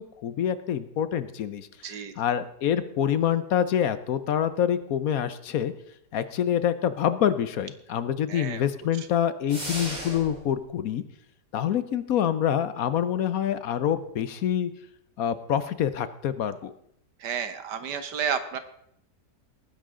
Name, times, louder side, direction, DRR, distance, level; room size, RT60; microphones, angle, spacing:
voice 1, 0.0-5.7 6.1-11.0 11.5-14.7 15.2-16.7, left 9 dB, 65° left, 13 dB, 1.1 m, -26 dB
voice 2, 1.8-2.1 8.3-8.7 9.0-9.1 17.2-18.6, right 7 dB, 80° right, 10 dB, 1.7 m, -31 dB
sound 1, 9.5-10.5, right 1 dB, 25° right, 3.4 m, -35 dB
19.0 x 10.0 x 3.7 m, 0.73 s
omnidirectional pair, 1.8 m